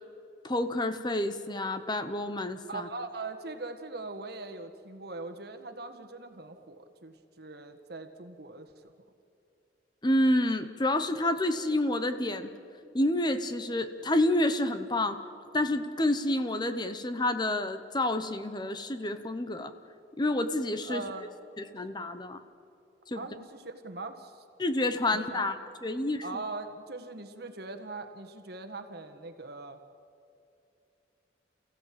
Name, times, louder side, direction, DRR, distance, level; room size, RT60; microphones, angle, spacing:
voice 1, 0.4-2.9 10.0-12.5 12.9-15.2 15.5-19.7 20.2-21.0 21.6-22.4 23.1-23.2 24.6-25.5 25.8-26.2, left 1 dB, 25° left, 10 dB, 0.9 m, -28 dB
voice 2, 2.7-8.7 20.8-21.3 23.1-24.4 25.1-25.4 26.2-29.8, right 3 dB, 55° right, 7 dB, 1.7 m, -41 dB
29.5 x 15.5 x 8.6 m, 2.6 s
head